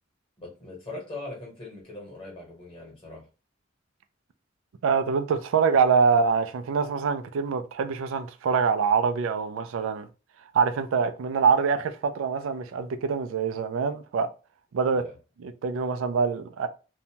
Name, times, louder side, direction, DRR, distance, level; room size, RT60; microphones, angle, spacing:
voice 1, 0.4-3.2 14.9-15.1, left 2 dB, 25° left, 1.3 m, -41 dB
voice 2, 4.8-10.1 10.5-14.3 14.7-15.0 15.4-16.7, right 5 dB, 85° right, 0.3 m, -24 dB
2.7 x 2.1 x 2.8 m
head